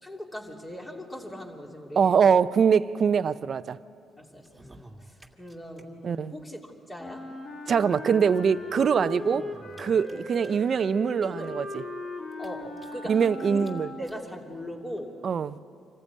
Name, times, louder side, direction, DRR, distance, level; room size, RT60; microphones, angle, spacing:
voice 1, 0.0-2.2 4.2-4.6 5.0-7.3 11.2-11.5 12.4-13.7 14.0-15.2, equal, 20° left, 0 dB, 3.0 m, -40 dB
voice 2, 2.0-3.8 6.0-6.3 7.7-9.5 9.8-11.8 13.1-13.9 15.2-15.6, right 7 dB, 50° right, 15 dB, 0.5 m, -23 dB
sound 1, 4.4-5.8 6.1-6.2 6.4-6.5 7.5-7.6 8.5-10.8 11.4-11.5 11.8-11.9 12.3-13.3 13.6-13.7 14.0-14.2 15.0-15.1, right 1 dB, 10° right, 1.9 m, -49 dB
Wind instrument woodwind instrument, 7.0-14.3, left 2 dB, 50° left, 3.5 m, -38 dB
25.5 x 14.5 x 8.5 m, 2.7 s
cardioid pair, 90°, 0 cm